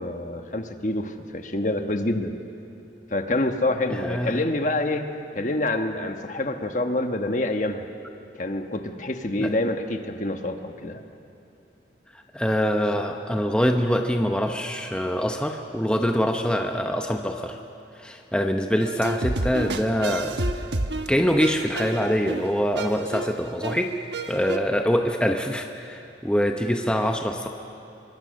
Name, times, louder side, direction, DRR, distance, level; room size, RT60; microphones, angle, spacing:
voice 1, 0.0-2.4 3.1-5.1 5.3-7.8 8.4-11.0, left 2 dB, 45° left, 6 dB, 1.3 m, -27 dB
voice 2, 3.9-4.5 9.4-9.5 12.3-17.6 18.0-20.4 21.1-23.9 24.3-27.5, equal, 5° left, 3 dB, 0.8 m, -24 dB
sound 1, 18.8-24.6, right 2 dB, 75° right, 1.2 m, -30 dB
26.0 x 23.5 x 6.5 m, 2.8 s
head